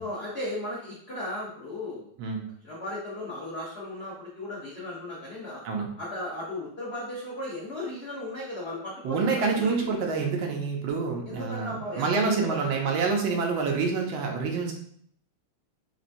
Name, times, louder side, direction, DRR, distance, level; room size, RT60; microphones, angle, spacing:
voice 1, 0.0-2.1 2.6-5.6 6.0-9.7 11.3-13.0, left 1 dB, 70° left, -5 dB, 0.6 m, -36 dB
voice 2, 9.0-14.7, right 4 dB, 75° right, 1 dB, 1.4 m, -27 dB
4.2 x 3.3 x 2.6 m, 0.64 s
omnidirectional pair, 2.3 m